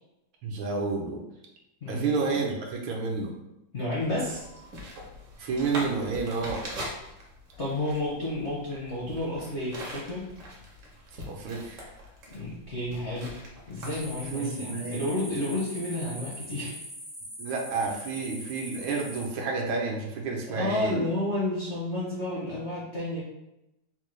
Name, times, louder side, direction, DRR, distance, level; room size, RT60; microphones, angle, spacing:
voice 1, 0.4-1.2 1.9-3.3 5.4-6.6 11.3-11.9 14.3-15.0 17.4-21.0, right 4 dB, 75° right, 0 dB, 1.4 m, -30 dB
voice 2, 3.7-4.5 7.6-10.3 12.3-13.3 13.7-16.8 20.5-23.2, left 1 dB, 70° left, -6 dB, 0.6 m, -31 dB
sound 1, 4.0-14.3, equal, 60° right, 0.8 m, -42 dB
sound 2, 13.8-19.3, equal, 5° right, 0.3 m, -42 dB
4.2 x 2.2 x 3.1 m, 0.90 s
omnidirectional pair, 2.3 m